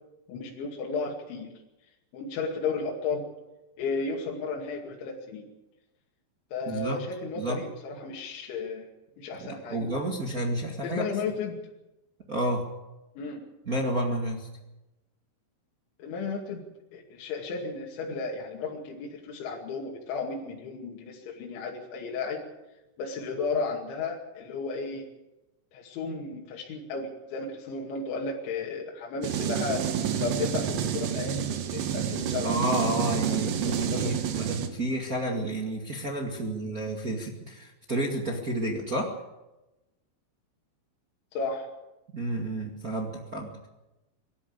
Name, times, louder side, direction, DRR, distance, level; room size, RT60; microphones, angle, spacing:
voice 1, 0.3-1.5 2.1-3.3 3.8-5.5 6.5-8.9 9.2-9.8 10.8-11.6 13.2-13.4 16.0-16.6 16.9-22.4 23.0-25.1 25.7-32.5 33.0-34.5 36.6-36.7 41.4-41.7, left 4 dB, 75° left, -1 dB, 4.7 m, -34 dB
voice 2, 6.7-7.0 7.3-7.6 9.4-11.1 12.3-12.7 13.6-14.5 32.4-39.1 42.1-43.7, right 1 dB, 45° right, 0 dB, 1.1 m, -30 dB
sound 1, 29.2-34.7, right 9 dB, 70° right, 3.5 m, -29 dB
24.0 x 13.0 x 8.6 m, 1.0 s
omnidirectional pair, 5.5 m